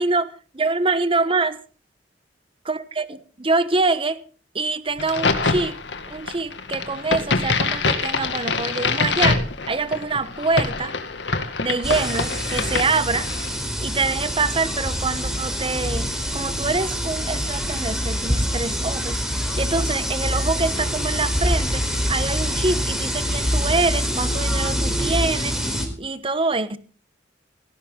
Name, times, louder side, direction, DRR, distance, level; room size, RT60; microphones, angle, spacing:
voice 1, 0.0-1.6 2.6-4.2 4.5-5.8 6.1-11.0 11.6-13.3 13.8-19.2 19.6-26.8, right 3 dB, 30° right, 1.1 m, -25 dB
Crack, 5.0-13.6, left 4 dB, 85° left, 2.2 m, -25 dB
sound 1, 11.8-25.9, equal, 5° right, 4.1 m, -25 dB
17.5 x 17.0 x 3.8 m
head